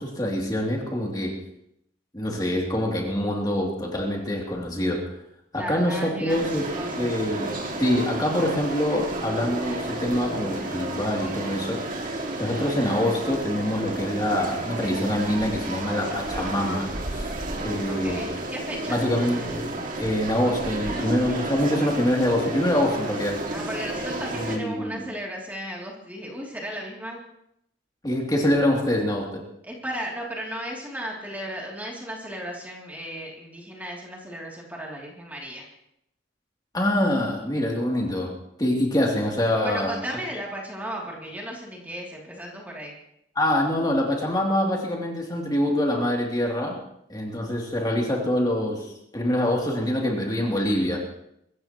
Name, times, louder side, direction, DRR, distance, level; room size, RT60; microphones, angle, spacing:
voice 1, 0.0-1.3 2.1-5.0 5.5-6.7 7.0-11.8 12.4-16.9 17.1-17.3 17.6-18.4 18.9-19.7 20.0-23.4 24.4-25.0 28.0-29.4 36.7-38.3 38.6-39.9 43.4-46.8 47.1-51.0, left 1 dB, 20° left, -1 dB, 2.8 m, -25 dB
voice 2, 5.5-7.1 17.9-19.0 23.5-27.2 29.7-35.7 39.6-42.9, equal, 10° right, -2 dB, 2.8 m, -35 dB
sound 1, 6.3-24.6, right 2 dB, 45° right, 2.1 m, -32 dB
24.0 x 15.0 x 3.0 m, 0.77 s
head